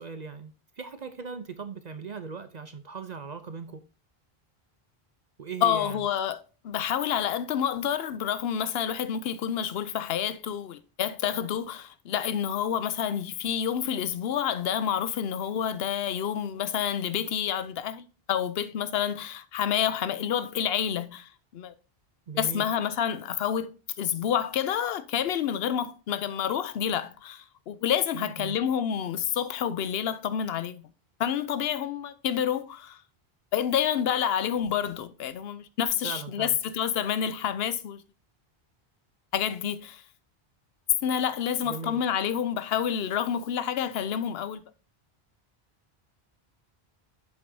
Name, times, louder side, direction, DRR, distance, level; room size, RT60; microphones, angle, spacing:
voice 1, 0.0-3.8 5.4-6.0 22.3-22.6 28.1-28.6 36.0-36.6 41.6-42.0, right 5 dB, 50° right, 0.7 m, -39 dB
voice 2, 5.6-6.4 6.6-21.7 22.4-30.8 31.2-33.0 33.5-38.0 39.3-40.0 41.0-44.6, left 9 dB, 80° left, 0.9 m, -28 dB
7.7 x 7.3 x 2.7 m
omnidirectional pair, 1.0 m